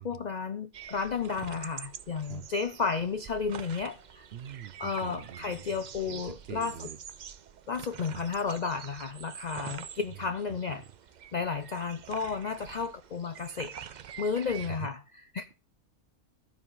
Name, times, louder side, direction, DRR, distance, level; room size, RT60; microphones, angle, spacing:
voice 1, 0.0-4.3 4.8-6.9 7.7-10.8 11.3-13.7 14.2-15.5, left 5 dB, 70° left, 0.4 m, -33 dB
sound 1, 0.7-14.7, right 8 dB, 85° right, 0.4 m, -46 dB
voice 2, 4.3-7.0 8.1-8.3 10.7-10.8 14.5-14.9, right 10 dB, 60° right, 0.7 m, -44 dB
12.5 x 4.8 x 5.4 m
omnidirectional pair, 1.5 m